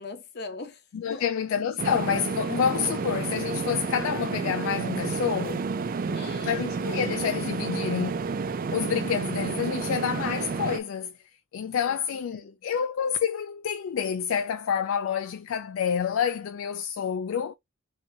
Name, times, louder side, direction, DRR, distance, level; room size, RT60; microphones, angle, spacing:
voice 1, 0.0-0.8 1.1-1.3 6.0-6.7 11.9-12.6, left 3 dB, 45° left, 0.8 m, -41 dB
voice 2, 0.9-5.6 6.4-8.2 8.7-11.1 11.5-17.5, left 7 dB, 65° left, 0.3 m, -28 dB
sound 1, 1.8-10.8, right 4 dB, 40° right, 0.3 m, -30 dB
4.5 x 2.8 x 2.7 m
head